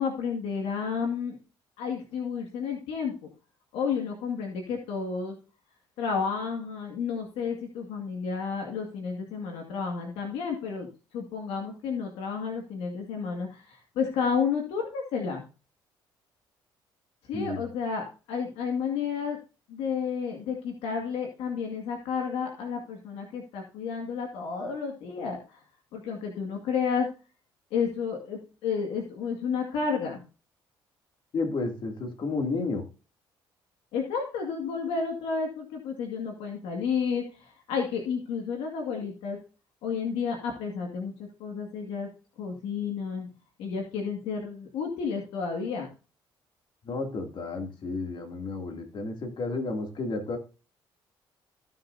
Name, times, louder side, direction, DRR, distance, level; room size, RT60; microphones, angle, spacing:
voice 1, 0.0-1.4 1.8-3.1 3.7-5.4 6.0-10.9 11.1-15.4 17.3-19.4 19.7-25.6 25.9-27.1 27.7-30.2 33.9-39.4 39.8-41.1 41.4-42.1 42.4-43.3 43.6-45.9, left 6 dB, 85° left, 2 dB, 2.1 m, -31 dB
voice 2, 17.3-17.6 31.3-32.8 46.8-50.4, left 3 dB, 55° left, 3 dB, 2.6 m, -32 dB
15.0 x 6.9 x 2.7 m, 0.33 s
supercardioid pair, 75°, 10 cm